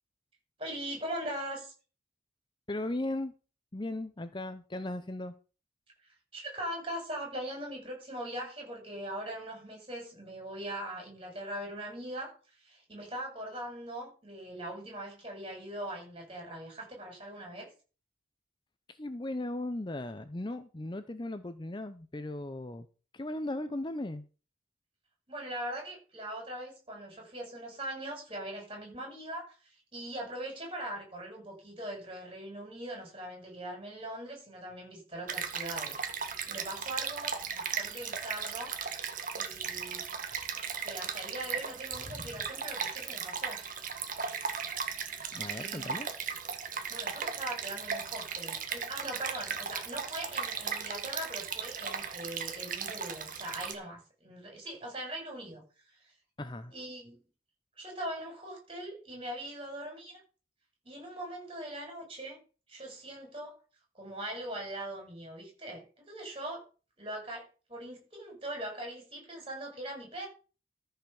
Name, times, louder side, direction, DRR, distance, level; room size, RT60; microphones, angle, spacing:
voice 1, 0.6-1.7 6.0-17.7 25.3-36.2 36.5-38.7 39.3-40.0 40.8-43.6 45.4-46.1 46.9-56.1 56.7-57.2 57.8-60.2 60.8-62.4 62.7-63.6 63.9-66.6 67.0-70.3, right 1 dB, 30° right, 7.6 m, -41 dB
voice 2, 2.7-3.3 3.7-5.3 19.0-22.9 23.1-24.2 42.1-42.2 45.3-46.1 56.4-56.7, left 1 dB, 25° left, 0.7 m, -37 dB
Stream, 35.3-53.7, right 6 dB, 45° right, 1.7 m, -37 dB
14.0 x 5.7 x 7.0 m
head